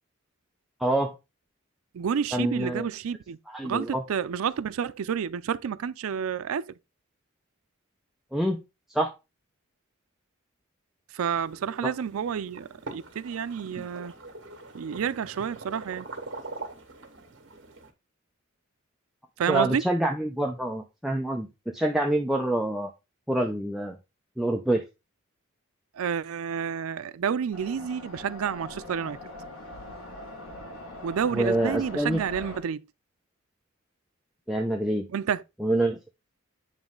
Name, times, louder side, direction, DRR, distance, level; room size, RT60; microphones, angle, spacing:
voice 1, 0.8-1.1 2.3-2.9 3.5-4.0 8.3-8.6 8.9-9.1 19.5-21.5 21.7-22.9 23.3-24.0 24.4-24.8 31.3-32.2 34.5-35.1 35.6-36.0, right 1 dB, ahead, 0.5 m, -26 dB
voice 2, 1.9-3.4 3.6-6.7 11.1-14.1 14.7-16.1 19.4-19.8 26.0-29.2 31.0-32.8 35.1-35.4, right 7 dB, 85° right, 0.4 m, -29 dB
sound 1, 11.3-17.9, right 3 dB, 60° right, 1.6 m, -43 dB
sound 2, 27.5-32.6, left 1 dB, 80° left, 1.6 m, -42 dB
9.0 x 3.1 x 3.8 m
head